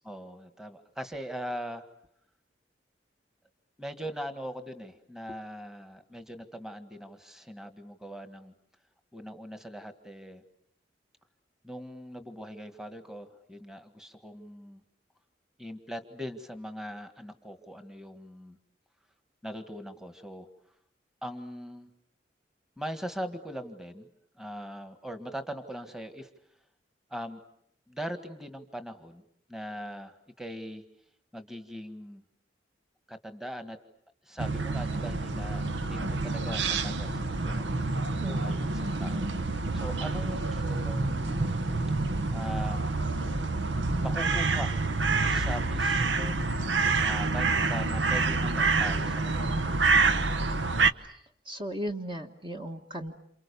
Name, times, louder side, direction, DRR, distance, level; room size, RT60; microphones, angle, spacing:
voice 1, 0.0-1.8 3.8-8.5 9.1-10.4 11.6-14.8 15.6-18.6 19.4-20.5 21.2-21.9 22.8-24.1 24.4-26.3 27.1-27.4 27.9-29.2 29.5-30.8 31.3-32.2 33.1-33.8 34.2-37.7 38.1-39.2 39.7-41.4 42.3-42.9 44.0-44.7 45.0-46.5 47.0-49.8, equal, 5° right, 8 dB, 1.7 m, -40 dB
sound 1, 34.4-50.9, right 3 dB, 80° right, 1.1 m, -27 dB
voice 2, 38.2-38.8 51.4-53.2, right 1 dB, 25° right, 4 dB, 1.5 m, -36 dB
29.0 x 28.5 x 7.0 m, 0.71 s
head